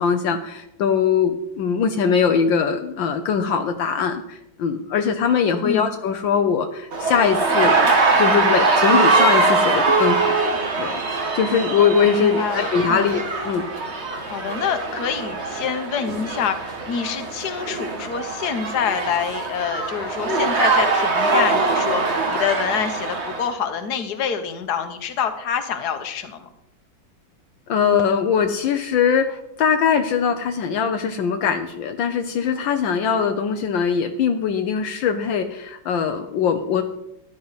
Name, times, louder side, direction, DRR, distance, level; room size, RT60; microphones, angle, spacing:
voice 1, 0.0-7.8 8.2-10.4 10.8-11.0 11.3-13.7 27.7-36.8, left 6 dB, 75° left, 6 dB, 1.5 m, -21 dB
sound 1, 6.9-23.5, right 3 dB, 35° right, 1.6 m, -22 dB
voice 2, 12.2-13.1 14.3-26.5, left 7 dB, 55° left, 8 dB, 1.6 m, -26 dB
14.5 x 11.5 x 4.1 m, 0.82 s
omnidirectional pair, 2.1 m